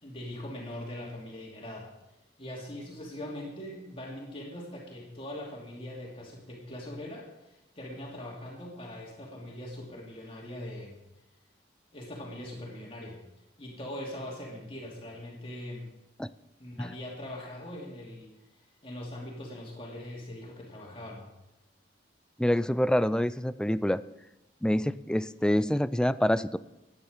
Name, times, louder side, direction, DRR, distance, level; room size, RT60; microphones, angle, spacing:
voice 1, 0.0-1.9 2.4-11.0 11.9-13.2 13.6-15.9 16.6-18.3 18.8-21.3, left 1 dB, 30° left, -3 dB, 2.7 m, -41 dB
voice 2, 22.4-24.0 24.6-26.6, equal, 5° left, 15 dB, 0.3 m, -26 dB
15.0 x 10.0 x 5.1 m, 0.92 s
head